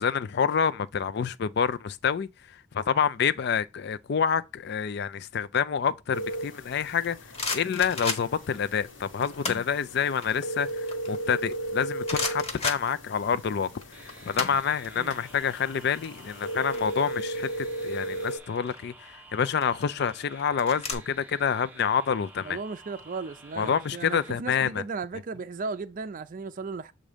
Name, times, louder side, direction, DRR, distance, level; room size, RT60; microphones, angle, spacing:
voice 1, 0.0-2.3 2.7-7.2 7.5-13.7 14.2-22.6 23.6-24.8, left 7 dB, 60° left, 0.4 m, -27 dB
sound 1, 6.1-18.4, right 1 dB, 85° left, 1.3 m, -36 dB
sound 2, 7.0-8.5 9.2-9.7 10.1-11.7 12.0-13.4 13.7-15.2 15.4-15.6 15.9-17.4 18.4-18.8 19.5-20.9, left 3 dB, 30° left, 1.0 m, -34 dB
sound 3, 13.9-24.3, right 2 dB, 10° right, 0.7 m, -51 dB
voice 2, 22.4-26.9, right 4 dB, 45° right, 0.4 m, -36 dB
7.3 x 2.6 x 5.0 m
head